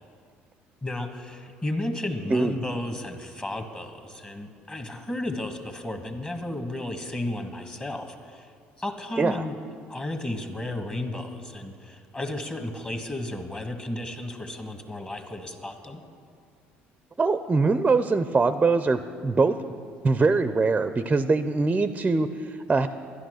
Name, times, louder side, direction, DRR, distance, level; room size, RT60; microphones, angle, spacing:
voice 1, 0.8-8.5 8.8-9.6 9.9-16.0, left 1 dB, 20° left, 5 dB, 1.4 m, -33 dB
voice 2, 17.2-19.5 20.0-22.9, right 3 dB, 20° right, 11 dB, 0.5 m, -23 dB
11.5 x 10.5 x 6.4 m, 2.3 s
supercardioid pair, 90°, 5 cm